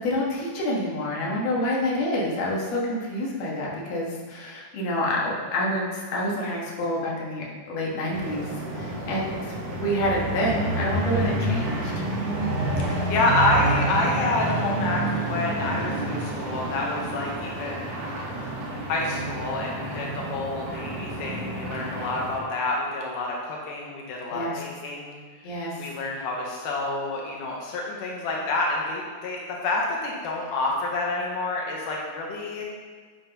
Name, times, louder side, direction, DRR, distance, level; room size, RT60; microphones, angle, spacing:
voice 1, 0.0-12.1 24.3-24.6 25.4-25.8, left 1 dB, 60° left, -4 dB, 2.4 m, -28 dB
sound 1, 8.1-22.4, right 2 dB, 60° right, 2.2 m, -29 dB
voice 2, 8.8-9.1 12.8-18.5 18.9-25.2 25.5-32.7, left 2 dB, 80° left, -2 dB, 2.5 m, -28 dB
10.5 x 7.4 x 2.9 m, 1.5 s
omnidirectional pair, 3.6 m